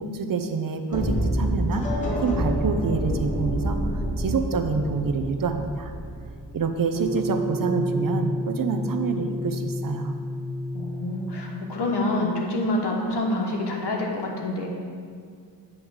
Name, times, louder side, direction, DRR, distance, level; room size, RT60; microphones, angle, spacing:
voice 1, 0.0-1.9 2.2-5.9 6.5-10.1, right 4 dB, 55° right, 6 dB, 0.6 m, -27 dB
sound 1, 0.9-6.9, equal, 20° left, 1.5 m, -27 dB
sound 2, 6.9-12.2, equal, ahead, 1.1 m, -30 dB
voice 2, 10.7-14.7, left 1 dB, 70° left, 0 dB, 1.3 m, -27 dB
8.8 x 3.2 x 6.4 m, 2.1 s
cardioid pair, 70°, 42 cm